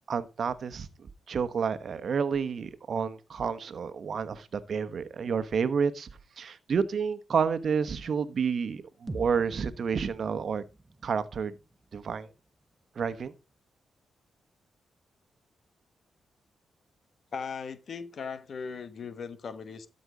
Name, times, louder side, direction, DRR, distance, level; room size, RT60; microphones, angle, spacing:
voice 1, 0.1-0.9 1.3-6.1 6.4-10.6 11.0-11.5 11.9-12.3 13.0-13.3, right 6 dB, 60° right, 1.1 m, -30 dB
sound 1, 9.1-13.0, right 1 dB, 25° right, 1.2 m, -46 dB
voice 2, 17.3-19.9, left 5 dB, 60° left, 1.2 m, -38 dB
13.0 x 5.4 x 5.0 m
supercardioid pair, 55°, 0 cm